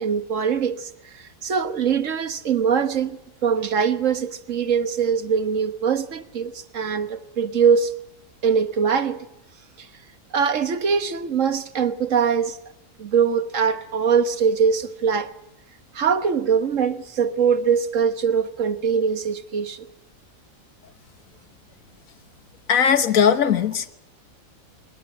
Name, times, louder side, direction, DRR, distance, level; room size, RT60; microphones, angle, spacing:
voice 1, 0.0-7.9 8.4-9.3 9.8-9.9 10.3-12.6 13.0-15.3 15.9-19.9, right 6 dB, 65° right, 1.6 m, -22 dB
voice 2, 22.7-23.9, left 7 dB, 75° left, 1.6 m, -18 dB
24.0 x 18.0 x 8.9 m
omnidirectional pair, 1.4 m